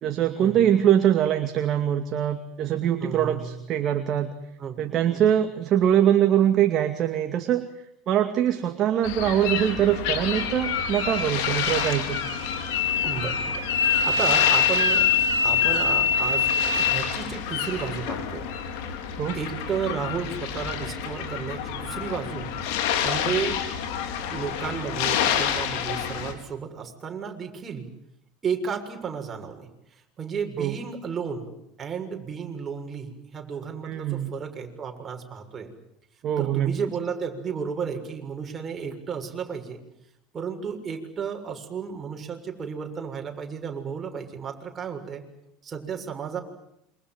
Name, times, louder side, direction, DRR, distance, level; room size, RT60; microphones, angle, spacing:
voice 1, 0.0-4.3 4.8-7.7 8.1-12.2 19.2-19.4 30.6-30.8 33.8-34.3 36.2-36.8, right 10 dB, 45° right, 6 dB, 2.4 m, -23 dB
voice 2, 3.0-3.6 4.6-4.8 5.1-5.2 13.0-15.1 15.4-18.5 19.3-22.5 23.0-23.6 24.3-27.9 28.4-31.5 31.8-35.7 36.4-39.8 40.3-45.2 45.6-46.4, right 6 dB, 30° right, 3 dB, 6.8 m, -33 dB
sound 1, 9.0-26.3, left 8 dB, 65° left, 4.6 m, -29 dB
sound 2, 10.3-17.0, left 6 dB, 85° left, 3.7 m, -24 dB
28.0 x 25.5 x 7.7 m, 0.81 s
hypercardioid pair, 80°, 0 cm